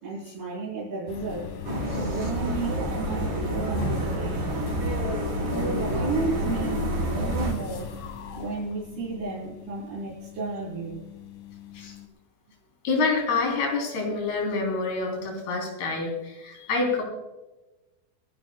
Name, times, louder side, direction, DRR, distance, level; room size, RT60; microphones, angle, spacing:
voice 1, 0.0-1.6 1.9-4.6 5.4-7.9 8.3-11.0, right 4 dB, 80° right, -8 dB, 6.3 m, -33 dB
sound 1, 1.1-12.1, left 6 dB, 60° left, 2.6 m, -38 dB
sound 2, 1.7-7.5, right 1 dB, 55° right, 5.6 m, -29 dB
voice 2, 12.8-17.0, left 4 dB, 80° left, 0 dB, 5.5 m, -27 dB
29.0 x 11.0 x 2.3 m, 1.0 s
omnidirectional pair, 4.5 m